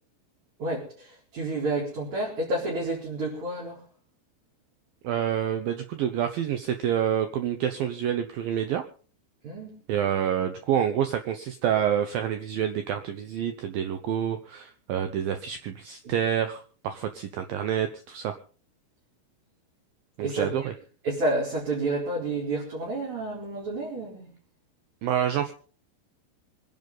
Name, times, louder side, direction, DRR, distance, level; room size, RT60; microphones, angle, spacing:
voice 1, 0.6-3.8 9.4-9.7 16.0-16.1 20.2-20.7 21.0-24.3, right 2 dB, 40° right, -5 dB, 5.3 m, -30 dB
voice 2, 5.0-8.8 9.9-18.4 20.2-20.7 25.0-25.5, right 9 dB, 85° right, 8 dB, 2.0 m, -28 dB
25.0 x 10.5 x 4.0 m, 0.42 s
omnidirectional pair, 5.4 m